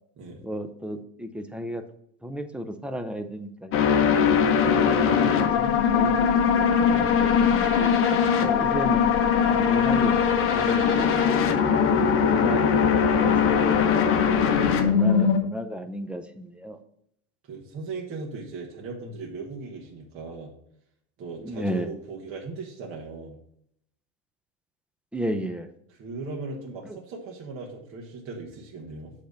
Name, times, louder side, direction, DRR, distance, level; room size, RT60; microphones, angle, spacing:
voice 1, 0.4-1.8 2.2-3.7 4.6-8.1 8.4-9.0 9.5-10.1 10.5-11.5 12.0-13.9 14.8-16.8 21.4-21.9 25.1-25.7, equal, 5° right, 7 dB, 0.4 m, -34 dB
sound 1, 3.7-15.4, left 7 dB, 40° left, 0.9 m, -21 dB
voice 2, 11.8-12.2 17.5-20.5 21.2-23.4 25.9-29.1, right 3 dB, 40° right, -1 dB, 1.5 m, -38 dB
7.8 x 3.4 x 6.4 m, 0.70 s
supercardioid pair, 135°, 35 cm